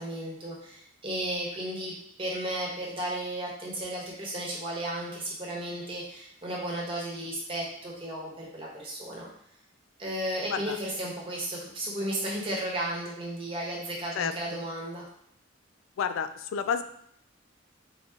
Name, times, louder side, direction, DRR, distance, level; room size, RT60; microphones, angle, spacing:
voice 1, 0.0-9.3 10.0-15.0, right 1 dB, 25° right, -4 dB, 1.1 m, -34 dB
voice 2, 16.0-16.8, left 7 dB, 80° left, 11 dB, 0.3 m, -30 dB
3.9 x 2.9 x 3.6 m, 0.68 s
head